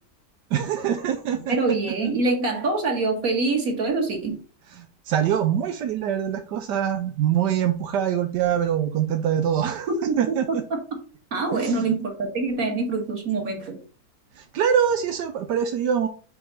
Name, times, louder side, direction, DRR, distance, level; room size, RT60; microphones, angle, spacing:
voice 1, 0.5-1.6 5.1-9.9 10.2-10.6 11.5-11.8 14.4-16.1, right 9 dB, 85° right, 7 dB, 1.4 m, -24 dB
voice 2, 1.5-4.4 9.9-10.8 11.3-13.8, right 3 dB, 55° right, 2 dB, 2.2 m, -25 dB
5.6 x 4.7 x 5.5 m, 0.39 s
omnidirectional pair, 1.8 m